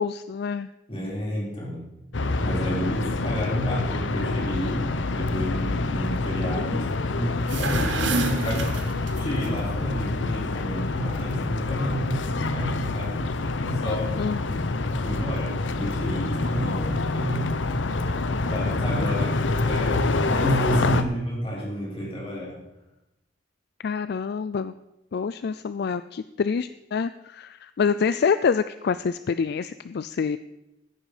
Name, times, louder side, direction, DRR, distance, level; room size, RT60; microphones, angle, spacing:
voice 1, 0.0-0.7 14.2-14.9 23.8-24.7 25.1-30.4, left 6 dB, 60° left, 13 dB, 0.4 m, -27 dB
voice 2, 0.9-1.8 2.4-8.7 9.2-13.3 13.6-14.2 14.8-17.5 18.5-22.6, equal, 30° left, -5 dB, 5.4 m, -30 dB
sound 1, 2.1-21.0, left 3 dB, 85° left, 0.8 m, -26 dB
sound 2, 7.3-9.5, right 4 dB, 75° right, 1.4 m, -29 dB
15.0 x 9.1 x 5.0 m, 0.93 s
head